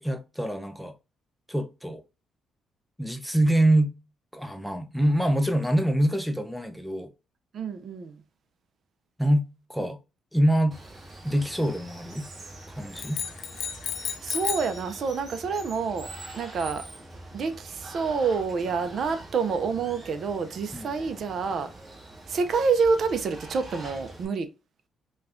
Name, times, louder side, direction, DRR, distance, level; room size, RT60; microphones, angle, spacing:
voice 1, 0.0-0.9 1.5-2.0 3.0-3.9 4.3-7.1 9.2-10.0 10.3-10.8 11.2-12.2 12.7-13.2 20.7-20.9, right 1 dB, ahead, 0.5 m, -25 dB
voice 2, 7.5-8.1 14.2-16.1 16.3-16.8 17.3-21.7 22.3-24.5, right 5 dB, 60° right, 0.5 m, -27 dB
Water, 10.7-24.3, right 2 dB, 30° right, 1.6 m, -44 dB
sound 1, 13.0-14.8, left 8 dB, 65° left, 0.4 m, -32 dB
5.2 x 2.3 x 2.5 m
cardioid pair, 90°, 0 cm